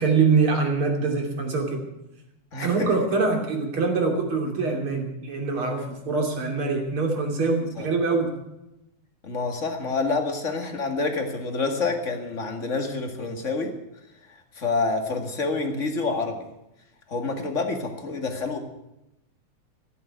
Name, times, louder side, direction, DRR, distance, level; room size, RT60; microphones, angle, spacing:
voice 1, 0.0-1.8 2.6-8.3, right 4 dB, 45° right, 2 dB, 3.6 m, -24 dB
voice 2, 2.5-2.9 7.8-7.9 9.2-13.7 14.6-16.4 17.1-18.6, left 3 dB, 30° left, 4 dB, 1.9 m, -27 dB
15.5 x 8.9 x 9.3 m, 0.90 s
omnidirectional pair, 3.4 m